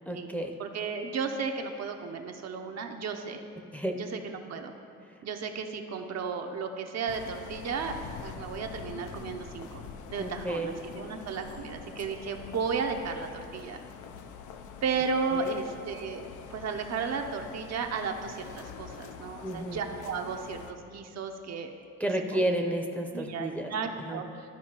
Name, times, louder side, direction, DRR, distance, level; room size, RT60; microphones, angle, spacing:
voice 1, 0.1-0.5 3.7-4.0 10.2-10.7 15.3-15.5 19.4-19.8 22.0-23.7 24.0-24.2, right 1 dB, 5° left, 2 dB, 0.6 m, -31 dB
voice 2, 0.6-3.4 4.0-4.7 5.2-9.8 10.1-13.8 14.8-21.7 22.3-22.4 23.1-24.5, right 5 dB, 60° right, 4 dB, 0.7 m, -34 dB
sound 1, 7.1-20.7, left 6 dB, 80° left, 0.5 m, -45 dB
13.0 x 4.4 x 2.9 m, 2.3 s
cardioid pair, 90°, 30 cm